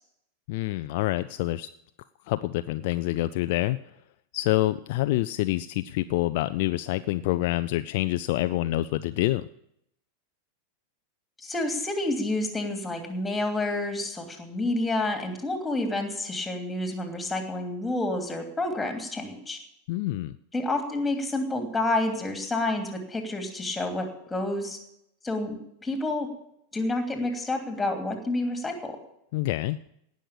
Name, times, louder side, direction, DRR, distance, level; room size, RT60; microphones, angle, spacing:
voice 1, 0.5-1.7 2.3-3.8 4.3-9.5 19.9-20.3 29.3-29.8, left 17 dB, 50° left, 12 dB, 0.4 m, -27 dB
voice 2, 11.4-19.6 20.5-24.8 25.2-26.3 26.7-29.0, left 2 dB, 10° left, 4 dB, 2.8 m, -29 dB
17.5 x 6.4 x 8.5 m, 0.77 s
figure-of-eight pair, 90°, 0 cm